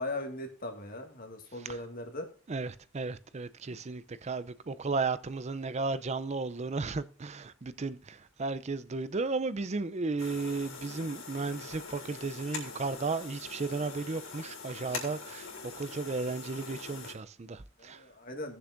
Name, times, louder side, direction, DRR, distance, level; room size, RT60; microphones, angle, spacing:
voice 1, 0.0-2.3 17.8-18.6, left 2 dB, 45° left, 1.9 m, -39 dB
voice 2, 2.5-18.0, right 3 dB, 35° right, 0.5 m, -34 dB
sound 1, 10.2-17.1, left 4 dB, 80° left, 3.0 m, -43 dB
18.0 x 6.9 x 2.6 m
head